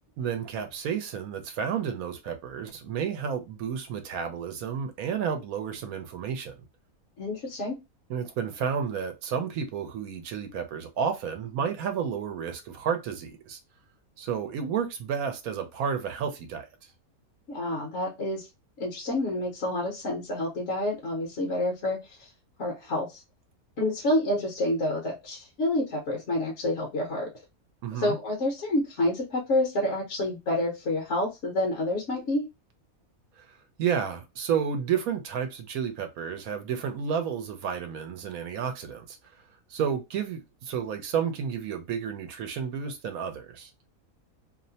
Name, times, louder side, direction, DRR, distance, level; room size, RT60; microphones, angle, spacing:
voice 1, 0.2-6.5 8.1-13.6 14.2-16.7 27.8-28.2 33.4-33.5 33.8-39.2 39.7-43.7, right 7 dB, 80° right, 1.1 m, -31 dB
voice 2, 7.2-7.8 17.5-18.5 18.8-22.3 22.6-23.2 23.8-27.3 27.9-32.4, left 1 dB, 60° left, 1.0 m, -28 dB
2.8 x 2.0 x 2.7 m
omnidirectional pair, 1.5 m